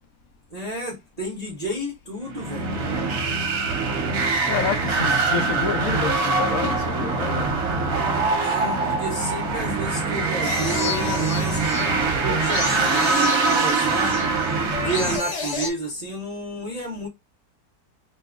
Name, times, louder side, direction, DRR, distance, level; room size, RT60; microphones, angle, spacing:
voice 1, 0.5-2.8 8.3-14.3 14.8-17.1, right 1 dB, 35° right, 0.6 m, -31 dB
sound 1, 2.3-15.2, right 4 dB, 60° right, 1.1 m, -23 dB
voice 2, 4.5-7.5, left 7 dB, 70° left, 0.9 m, -28 dB
sound 2, 10.4-15.7, left 3 dB, 50° left, 1.1 m, -31 dB
2.9 x 2.3 x 3.5 m
omnidirectional pair, 1.8 m